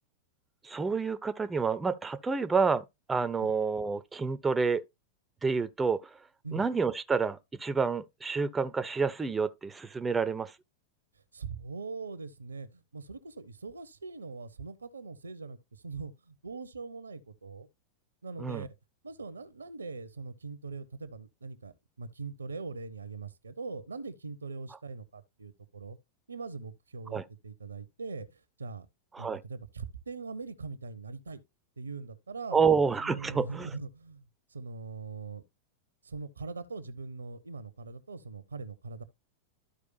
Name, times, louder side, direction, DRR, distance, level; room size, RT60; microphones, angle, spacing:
voice 1, 0.6-4.8 5.4-6.0 6.5-10.5 18.4-18.6 27.1-27.2 29.1-29.4 32.5-33.7, right 5 dB, 15° right, 0.6 m, -29 dB
voice 2, 11.3-17.7 18.2-18.7 19.0-26.0 26.3-28.9 29.2-31.4 31.8-32.6 33.0-34.3 34.5-35.4 36.0-39.0, right 4 dB, 75° right, 0.8 m, -41 dB
12.5 x 4.8 x 2.6 m
figure-of-eight pair, 90°, 0 cm